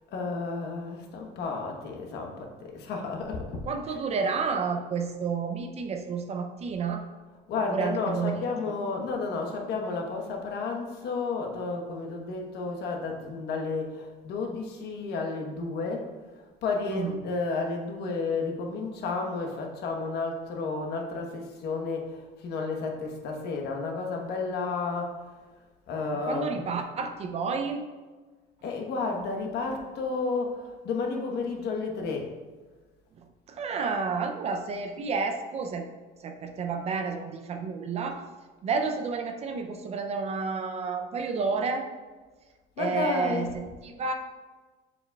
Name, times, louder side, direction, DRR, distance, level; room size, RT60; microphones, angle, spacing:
voice 1, 0.1-3.6 7.5-25.2 25.9-26.7 28.6-32.3 42.8-43.5, left 4 dB, 55° left, 2 dB, 1.1 m, -32 dB
voice 2, 3.6-7.0 7.7-8.3 8.7-8.8 16.9-17.1 26.2-27.8 33.5-35.8 36.2-38.2 38.6-41.9 42.8-44.1, right 5 dB, 30° right, 5 dB, 0.4 m, -30 dB
7.3 x 7.0 x 2.3 m, 1.3 s
cardioid pair, 160°, 21 cm